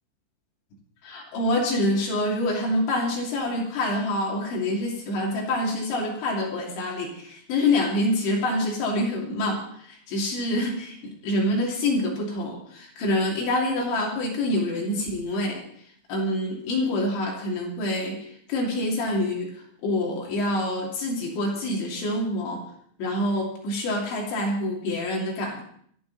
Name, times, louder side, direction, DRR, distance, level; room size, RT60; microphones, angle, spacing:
voice 1, 1.0-11.0 11.2-15.6 16.1-19.5 19.8-22.6 23.0-25.6, left 1 dB, 70° left, -2 dB, 5.2 m, -26 dB
26.5 x 11.5 x 4.2 m, 0.64 s
omnidirectional pair, 5.5 m